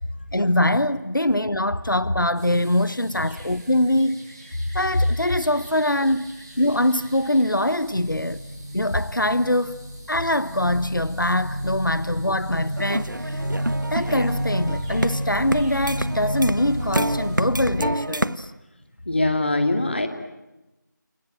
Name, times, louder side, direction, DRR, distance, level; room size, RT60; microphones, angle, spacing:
voice 1, 0.3-4.2 4.7-6.2 6.6-8.4 8.7-9.8 10.1-13.5 13.9-18.5, left 1 dB, 85° left, 1.1 m, -23 dB
sound 1, 2.3-17.4, right 1 dB, 15° right, 6.7 m, -47 dB
sound 2, 6.3-6.8 7.0-17.9, equal, 65° left, 4.0 m, -31 dB
sound 3, 12.8-18.4, right 1 dB, 75° right, 1.2 m, -29 dB
voice 2, 19.1-20.1, left 2 dB, 35° left, 2.5 m, -22 dB
29.0 x 22.5 x 9.0 m
figure-of-eight pair, 170°, 11 cm